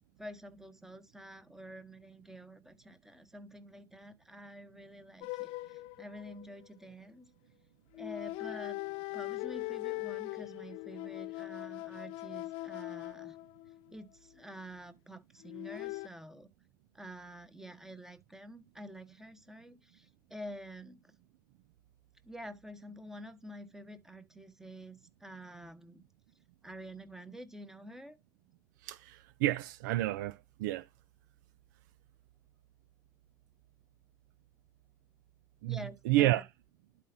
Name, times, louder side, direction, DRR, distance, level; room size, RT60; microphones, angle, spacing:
voice 1, 0.2-7.3 7.9-8.8 9.1-13.4 13.9-16.5 16.9-21.1 22.2-26.0 26.6-28.2 35.7-36.4, equal, 5° right, 1.2 m, -48 dB
sound 1, 5.2-6.8 7.9-14.0 15.4-16.1, left 21 dB, 55° left, 0.4 m, -41 dB
voice 2, 28.8-30.8 35.6-36.4, right 15 dB, 65° right, 0.4 m, -30 dB
12.0 x 4.2 x 2.7 m
figure-of-eight pair, 65°, 11 cm